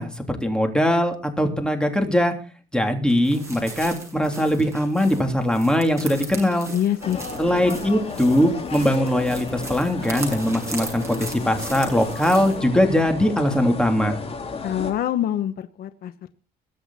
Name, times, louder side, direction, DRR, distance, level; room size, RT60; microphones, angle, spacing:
voice 1, 0.0-2.3 2.7-6.7 7.4-14.2, equal, 5° left, 5 dB, 3.3 m, -21 dB
sound 1, 3.1-12.6, right 2 dB, 15° right, 7.6 m, -38 dB
voice 2, 6.7-7.2 14.6-16.3, left 11 dB, 60° left, 11 dB, 1.0 m, -25 dB
sound 2, 7.0-14.9, left 4 dB, 35° left, 4.2 m, -33 dB
22.0 x 7.9 x 4.2 m, 0.36 s
cardioid pair, 110°, 17 cm